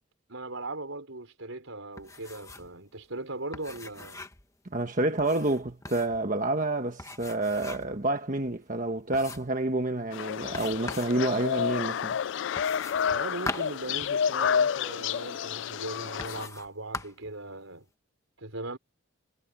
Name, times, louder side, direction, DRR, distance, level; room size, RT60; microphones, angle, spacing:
voice 1, 0.3-4.2 13.0-17.8 18.4-18.8, right 2 dB, 80° right, 4.8 m, -39 dB
sound 1, 2.0-2.8 3.0-3.1 3.5-4.5 5.2-6.2 7.0-8.0 8.5-8.6 9.1-9.6 10.5-11.2 12.6-14.6 15.4-15.5 16.2-16.7 16.9-17.3, left 2 dB, 15° left, 1.4 m, -41 dB
voice 2, 4.7-12.2, right 2 dB, 40° right, 1.4 m, -28 dB
sound 2, 10.1-16.5, left 7 dB, 60° left, 0.3 m, -30 dB
head